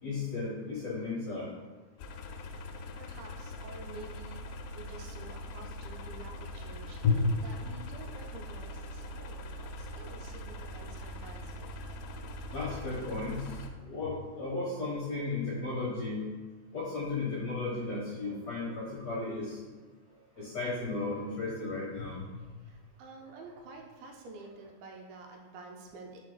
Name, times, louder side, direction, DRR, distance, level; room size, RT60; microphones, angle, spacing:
voice 1, 0.0-1.5 7.0-7.3 7.6-7.7 12.5-16.2 16.7-19.7 20.4-22.3, left 3 dB, 65° left, -6 dB, 1.8 m, -33 dB
sound 1, 2.0-13.7, equal, 80° left, 2.3 m, -42 dB
voice 2, 2.7-7.0 7.3-11.7 18.1-18.9 19.6-19.7 20.1-20.5 21.2-21.3 22.6-26.2, right 3 dB, 85° right, 2 dB, 2.5 m, -50 dB
5.0 x 4.5 x 5.3 m, 1.3 s
omnidirectional pair, 4.7 m